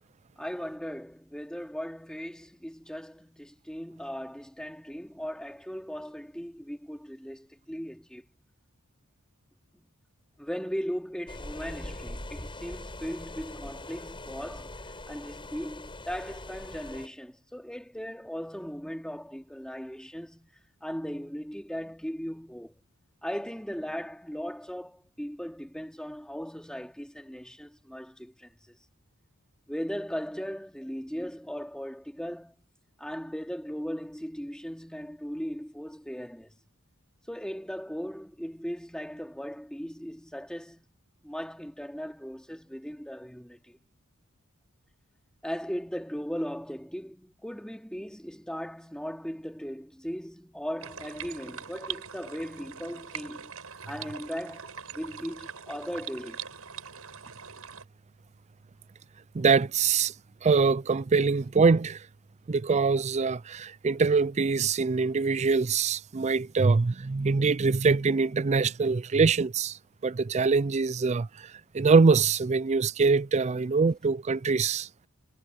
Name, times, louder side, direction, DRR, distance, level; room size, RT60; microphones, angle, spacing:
voice 1, 0.4-8.2 9.8-9.9 10.4-14.7 15.1-20.5 20.8-22.7 23.2-28.8 29.7-32.5 33.0-36.5 37.3-40.8 41.2-43.8 45.4-53.5 53.9-56.4, equal, 5° left, 3.9 m, -38 dB
sound 1, 11.3-17.1, left 1 dB, 25° left, 7.3 m, -42 dB
sound 2, 50.8-57.8, right 8 dB, 75° right, 7.8 m, -42 dB
voice 2, 59.3-60.1 60.4-62.0 62.5-69.8 70.0-71.3 71.7-74.9, right 4 dB, 30° right, 0.4 m, -24 dB
head